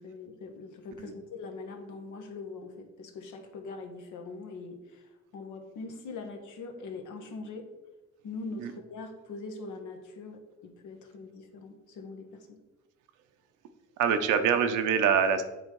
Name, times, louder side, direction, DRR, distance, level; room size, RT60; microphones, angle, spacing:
voice 1, 0.0-7.7 8.2-12.6, left 3 dB, 80° left, 5 dB, 1.2 m, -42 dB
voice 2, 14.0-15.4, right 7 dB, 90° right, 8 dB, 0.8 m, -24 dB
7.8 x 3.6 x 4.6 m, 1.1 s
cardioid pair, 90°, 30 cm